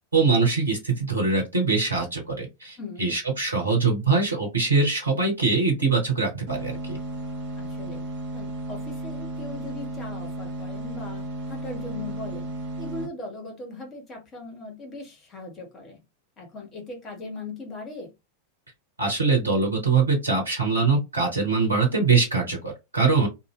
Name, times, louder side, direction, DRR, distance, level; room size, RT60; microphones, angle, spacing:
voice 1, 0.1-7.0 19.0-23.3, right 4 dB, 75° right, 1.0 m, -23 dB
voice 2, 2.8-3.1 7.5-8.0 8.3-12.5 12.8-16.0 16.4-18.1, left 2 dB, 25° left, 1.3 m, -39 dB
sound 1, 6.5-13.1, right 1 dB, 50° right, 1.0 m, -34 dB
2.6 x 2.5 x 3.1 m
figure-of-eight pair, 90°, 0 cm